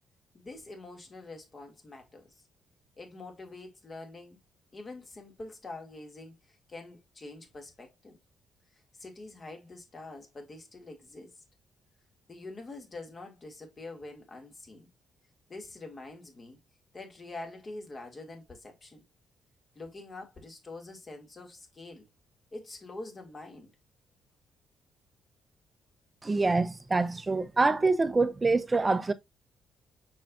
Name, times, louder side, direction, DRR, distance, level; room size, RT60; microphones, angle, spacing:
voice 1, 0.3-2.4 3.0-4.4 4.7-8.2 8.7-11.4 12.3-14.9 15.5-16.6 16.9-19.0 19.7-22.1 22.5-23.7, left 2 dB, 35° left, 2.6 m, -45 dB
voice 2, 26.2-29.1, right 3 dB, 25° right, 0.8 m, -25 dB
6.2 x 5.8 x 2.6 m
cardioid pair, 90°, 0 cm